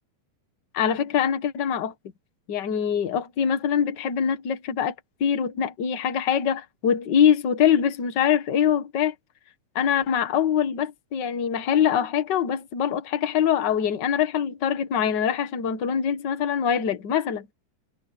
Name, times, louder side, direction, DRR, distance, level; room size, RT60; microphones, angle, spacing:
voice 1, 0.7-1.9 2.5-4.9 5.2-9.1 9.7-17.5, left 8 dB, 75° left, 1.0 m, -23 dB
omnidirectional pair, 4.4 m